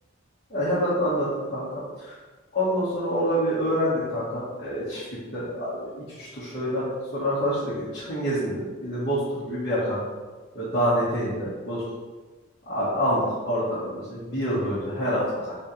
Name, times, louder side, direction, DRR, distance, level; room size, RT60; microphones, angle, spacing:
voice 1, 0.5-1.6 2.0-2.2 2.5-6.8 7.1-10.0 10.5-11.8 12.6-15.5, equal, 50° left, -12 dB, 1.5 m, -27 dB
4.1 x 2.6 x 4.4 m, 1.3 s
head